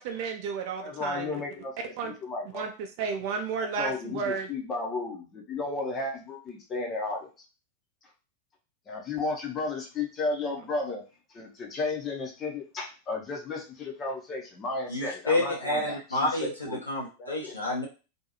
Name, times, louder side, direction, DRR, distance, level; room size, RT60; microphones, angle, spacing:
voice 1, 0.0-1.4 2.0-2.1 2.5-2.7 3.0-4.5, right 5 dB, 45° right, 4 dB, 0.5 m, -32 dB
voice 2, 0.8-2.7 3.6-7.3 8.9-11.0 11.3-16.8 17.2-17.5, left 3 dB, 25° left, 0 dB, 0.7 m, -34 dB
voice 3, 14.9-17.9, left 2 dB, 85° left, -4 dB, 0.8 m, -29 dB
2.6 x 2.3 x 2.8 m, 0.33 s
figure-of-eight pair, 90°, 0 cm